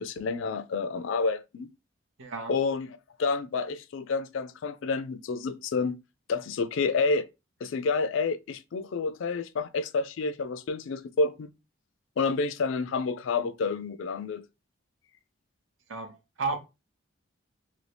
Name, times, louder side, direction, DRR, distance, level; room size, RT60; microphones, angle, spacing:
voice 1, 0.0-1.7 2.5-6.0 6.3-7.3 7.6-11.5 12.2-14.4, left 4 dB, 70° left, 0.4 m, -29 dB
voice 2, 2.2-2.5 15.9-16.6, right 3 dB, 70° right, 0.7 m, -33 dB
2.7 x 2.6 x 3.3 m
head